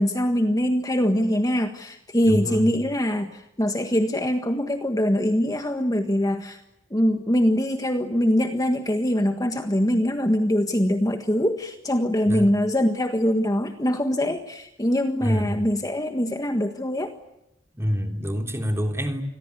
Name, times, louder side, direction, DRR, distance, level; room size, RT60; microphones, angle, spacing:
voice 1, 0.0-6.6 6.9-17.2, equal, 20° left, 6 dB, 1.6 m, -23 dB
voice 2, 2.2-2.7 12.3-12.4 15.2-15.6 17.7-19.2, equal, 15° right, 4 dB, 3.4 m, -26 dB
28.5 x 22.0 x 8.5 m, 0.86 s
head